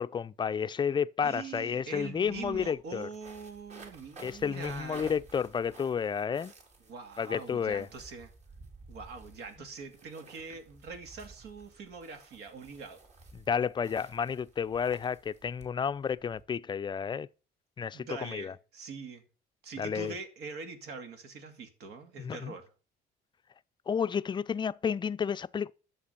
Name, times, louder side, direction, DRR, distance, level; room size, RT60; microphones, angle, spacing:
voice 1, 0.0-3.1 4.2-6.5 7.2-7.9 13.3-17.3 17.8-18.5 19.8-20.1 22.2-22.5 23.9-25.7, left 7 dB, 25° left, 0.5 m, -31 dB
voice 2, 1.2-5.2 6.9-8.3 8.9-13.0 17.9-19.2 19.6-22.7, right 4 dB, 75° right, 2.4 m, -43 dB
sound 1, 1.7-1.8 2.0-16.4, right 3 dB, 40° right, 2.9 m, -54 dB
11.5 x 6.9 x 5.6 m
cardioid pair, 110°, 17 cm